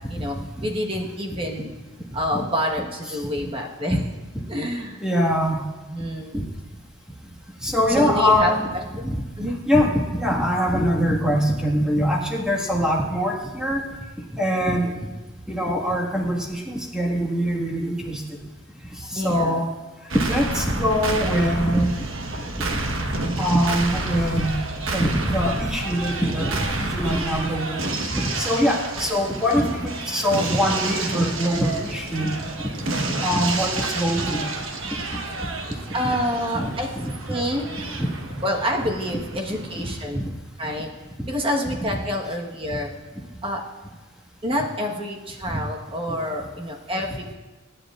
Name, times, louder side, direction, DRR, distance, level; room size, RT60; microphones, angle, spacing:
voice 1, 0.6-1.7 2.1-4.1 4.5-5.0 5.9-6.5 7.9-9.6 19.1-19.7 35.9-36.9 37.3-37.9 38.4-40.2 40.6-40.9 41.3-42.9 43.4-43.6 44.4-47.3, equal, 25° right, 1 dB, 1.3 m, -27 dB
voice 2, 5.0-5.7 6.3-6.4 7.6-8.7 9.1-9.2 9.4-13.8 14.3-14.9 15.5-18.2 19.1-19.7 20.2-22.1 22.5-22.6 23.4-24.6 24.9-32.3 33.2-34.5 36.5-36.7 36.9-37.1 40.1-40.3 46.1-46.2, equal, 5° right, -2 dB, 1.7 m, -23 dB
sound 1, 20.1-40.1, right 2 dB, 70° right, 1.3 m, -29 dB
24.0 x 9.8 x 2.5 m, 1.2 s
head